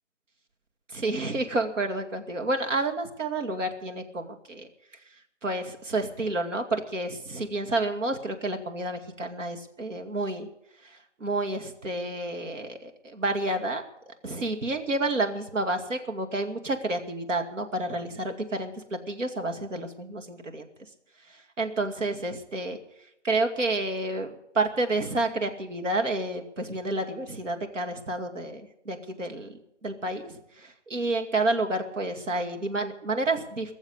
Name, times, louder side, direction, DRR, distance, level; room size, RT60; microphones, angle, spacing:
voice 1, 0.9-4.7 5.4-10.5 11.2-18.7 19.1-20.7 21.6-22.8 23.2-33.7, right 2 dB, 85° right, 5 dB, 2.4 m, -30 dB
20.5 x 7.2 x 8.2 m, 0.83 s
hypercardioid pair, 165°, 36 cm